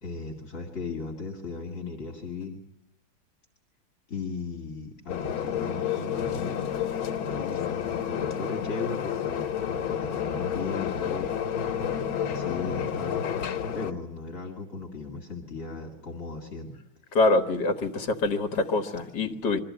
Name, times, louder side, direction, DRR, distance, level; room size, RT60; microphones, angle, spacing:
voice 1, 0.0-2.6 4.1-6.7 7.3-11.3 12.2-13.3 13.7-16.8 17.1-17.2, left 4 dB, 40° left, 1 dB, 2.5 m, -37 dB
sound 1, 5.1-13.9, left 8 dB, 90° left, 1.8 m, -30 dB
voice 2, 17.1-19.6, left 2 dB, 60° left, 5 dB, 1.9 m, -25 dB
23.5 x 14.0 x 9.6 m, 0.84 s
omnidirectional pair, 2.1 m